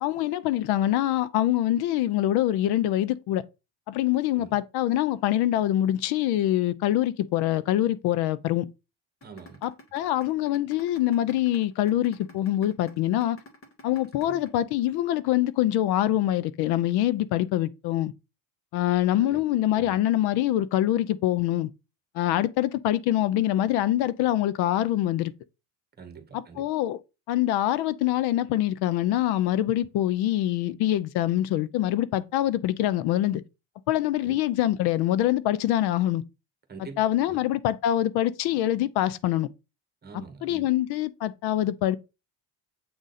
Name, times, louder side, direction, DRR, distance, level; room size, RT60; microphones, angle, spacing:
voice 1, 0.0-3.4 3.9-8.7 9.6-13.4 13.8-18.1 18.7-21.7 22.1-25.3 26.3-27.0 27.3-33.4 33.9-36.2 37.0-39.5 40.4-42.0, left 13 dB, 70° left, 0.6 m, -24 dB
sound 1, 9.2-15.2, left 2 dB, 35° left, 1.7 m, -49 dB
voice 2, 9.2-9.6 14.2-14.4 19.2-19.4 19.7-20.0 26.0-26.7 34.2-34.4 36.7-37.4 40.0-40.7, right 5 dB, 25° right, 1.5 m, -45 dB
7.8 x 3.8 x 4.1 m
cardioid pair, 130°, 39 cm